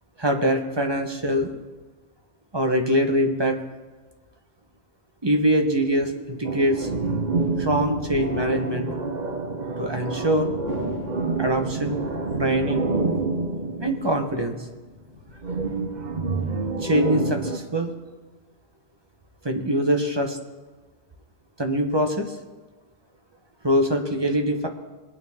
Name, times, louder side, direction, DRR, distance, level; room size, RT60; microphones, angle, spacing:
voice 1, 0.2-1.6 2.5-3.6 5.2-6.9 7.6-8.9 9.8-10.5 11.4-12.0 12.4-12.9 13.8-14.6 16.8-17.9 19.4-20.4 21.6-22.3 23.6-24.7, equal, 20° right, 4 dB, 1.0 m, -23 dB
sound 1, 6.4-14.7 15.4-17.6, right 4 dB, 40° right, 1.0 m, -28 dB
Thunder, 10.6-17.5, left 4 dB, 75° left, 1.4 m, -43 dB
21.0 x 9.2 x 3.6 m, 1.3 s
omnidirectional pair, 1.3 m